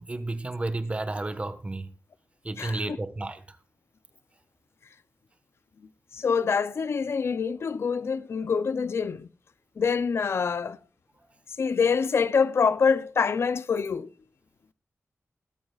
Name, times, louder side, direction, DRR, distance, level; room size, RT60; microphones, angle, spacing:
voice 1, 0.0-1.9 2.4-3.6, right 2 dB, 25° right, 1.2 m, -32 dB
voice 2, 6.1-9.3 9.8-10.8 11.6-14.1, left 5 dB, 60° left, 0.4 m, -25 dB
21.0 x 8.8 x 2.3 m
wide cardioid pair, 110°, 5 cm